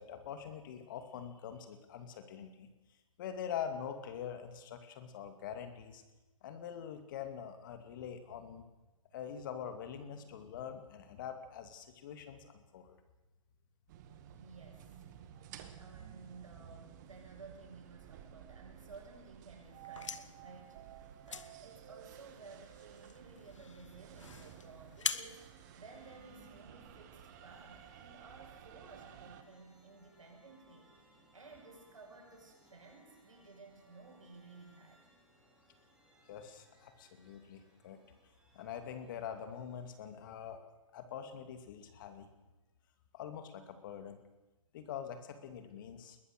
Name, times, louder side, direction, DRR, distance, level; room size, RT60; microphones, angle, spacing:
voice 1, 0.0-2.7 3.2-6.0 6.4-8.6 9.1-13.0 36.3-38.0 38.5-40.6 40.9-42.3 43.1-44.2 44.7-46.2, left 8 dB, 40° left, 8 dB, 2.6 m, -44 dB
sound 1, 13.9-29.4, right 9 dB, 35° right, 1.9 m, -54 dB
voice 2, 14.3-15.0 15.7-25.4 25.8-35.0, right 3 dB, 70° right, 1 dB, 7.7 m, -55 dB
sound 2, 19.7-26.5, left 6 dB, 65° left, 1.4 m, -45 dB
sound 3, 22.2-40.3, right 1 dB, 5° right, 3.8 m, -68 dB
21.5 x 19.5 x 6.7 m, 1.1 s
figure-of-eight pair, 135°, 17 cm